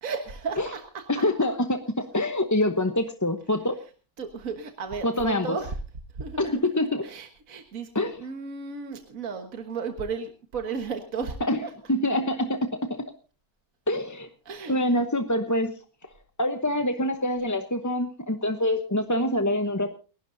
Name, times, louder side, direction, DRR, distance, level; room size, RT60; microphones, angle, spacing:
voice 1, 0.0-1.2 4.2-5.8 6.2-6.6 7.0-11.4 11.6-11.7 14.5-15.1, right 5 dB, 65° right, 5 dB, 1.9 m, -34 dB
voice 2, 1.1-3.8 5.0-5.6 6.4-7.1 7.9-8.2 11.4-11.6 11.9-12.6 13.9-14.3 14.7-15.7 16.4-19.9, left 1 dB, 15° left, 7 dB, 0.7 m, -25 dB
29.5 x 12.0 x 2.7 m, 0.36 s
omnidirectional pair, 1.6 m